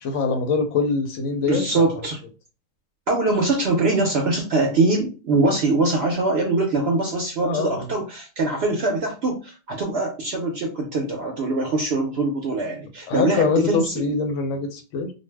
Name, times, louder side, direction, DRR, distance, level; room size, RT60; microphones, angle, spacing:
voice 1, 0.0-1.8 7.4-7.9 13.1-15.1, left 4 dB, 65° left, 5 dB, 0.8 m, -24 dB
voice 2, 1.5-2.2 3.1-13.9, right 2 dB, 65° right, 1 dB, 0.6 m, -23 dB
2.6 x 2.1 x 3.2 m, 0.32 s
omnidirectional pair, 1.6 m